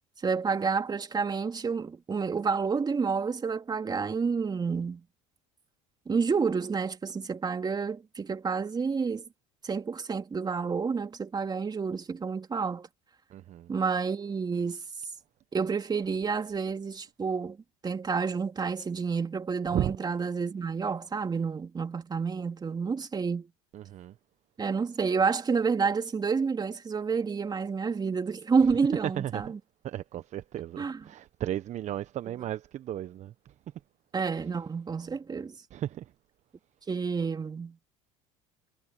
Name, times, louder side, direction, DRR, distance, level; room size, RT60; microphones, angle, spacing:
voice 1, 0.2-5.0 6.1-9.2 9.6-12.9 13.7-14.8 15.5-17.6 17.8-23.5 24.6-29.6 30.8-31.1 32.3-32.4 34.1-35.5 36.9-37.8, right 5 dB, 25° right, 3.2 m, -29 dB
voice 2, 13.3-13.7 19.7-19.9 23.7-24.1 29.2-29.4 29.8-33.3 35.7-36.0, right 12 dB, 45° right, 1.1 m, -35 dB
hypercardioid pair, 85°, 16 cm